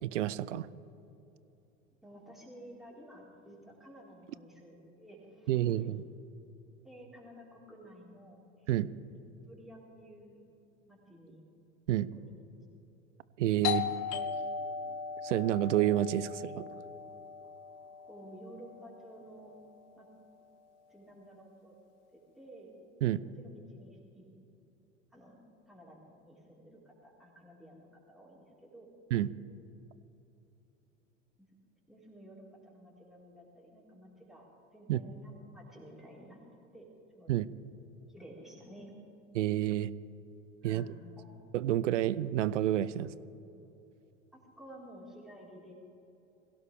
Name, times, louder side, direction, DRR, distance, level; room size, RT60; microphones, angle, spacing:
voice 1, 0.0-0.7 5.5-6.0 8.7-8.9 11.9-12.1 13.4-13.9 15.2-16.7 23.0-23.2 29.1-29.3 34.9-35.0 37.3-37.5 39.3-39.9 40.6-40.8 41.5-43.1, right 13 dB, 70° right, 18 dB, 0.6 m, -29 dB
voice 2, 2.0-5.6 6.8-8.7 9.5-10.4 10.9-11.4 12.2-12.3 18.1-19.5 20.0-20.1 20.9-21.7 22.1-22.7 23.1-24.3 25.1-28.9 31.4-31.5 31.9-34.4 34.7-36.4 36.7-36.9 37.1-37.3 38.1-39.0 40.6-41.4 44.3-45.7, equal, ahead, -5 dB, 4.4 m, -53 dB
Doorbell, 13.6-19.0, left 7 dB, 45° left, 1.0 m, -38 dB
22.0 x 17.0 x 3.5 m, 3.0 s
figure-of-eight pair, 80°, 38 cm